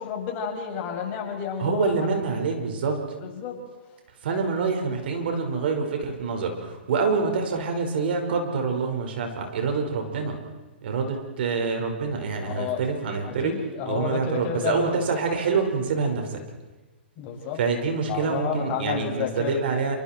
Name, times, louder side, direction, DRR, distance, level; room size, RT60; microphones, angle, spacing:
voice 1, 0.0-2.1 2.3-2.4 3.2-3.5 12.4-12.8 13.2-15.3 17.2-17.6 18.1-19.6, left 6 dB, 35° left, 0 dB, 6.6 m, -31 dB
voice 2, 1.6-3.0 4.2-10.4 10.8-13.6 13.9-16.4 17.6-20.0, right 4 dB, 60° right, 3 dB, 5.2 m, -26 dB
28.5 x 26.0 x 4.6 m, 1.2 s
hypercardioid pair, 130°, 6 cm